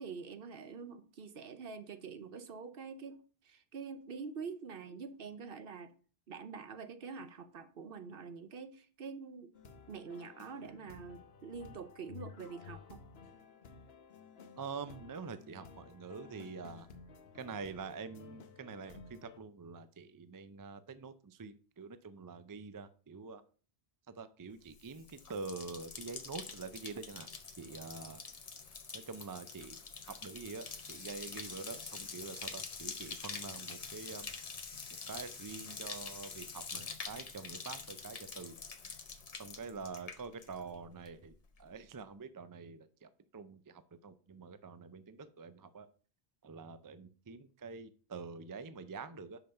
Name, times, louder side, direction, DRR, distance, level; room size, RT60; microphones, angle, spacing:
voice 1, 0.0-5.9 6.3-9.5 9.9-13.0 27.7-27.8, right 5 dB, 65° right, 1.0 m, -46 dB
sound 1, 9.5-19.4, left 6 dB, 75° left, 1.0 m, -54 dB
voice 2, 14.6-16.9 17.3-23.4 24.1-27.3 27.6-28.2 28.9-29.8 30.0-34.3 35.1-38.6 39.4-45.9 46.4-49.4, right 4 dB, 30° right, 0.3 m, -46 dB
Bathtub (filling or washing), 24.7-40.8 41.1-41.6, left 5 dB, 40° left, 0.8 m, -46 dB
5.9 x 5.3 x 5.6 m
omnidirectional pair, 1.0 m